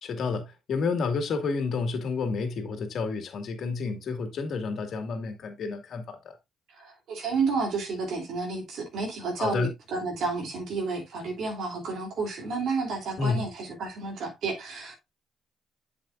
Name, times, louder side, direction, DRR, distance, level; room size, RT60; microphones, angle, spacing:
voice 1, 0.0-6.4 9.4-9.7 13.2-13.5, left 4 dB, 65° left, 2.0 m, -30 dB
voice 2, 6.7-14.9, right 4 dB, 75° right, 3.1 m, -31 dB
8.1 x 7.2 x 2.5 m
cardioid pair, 90°, 0 cm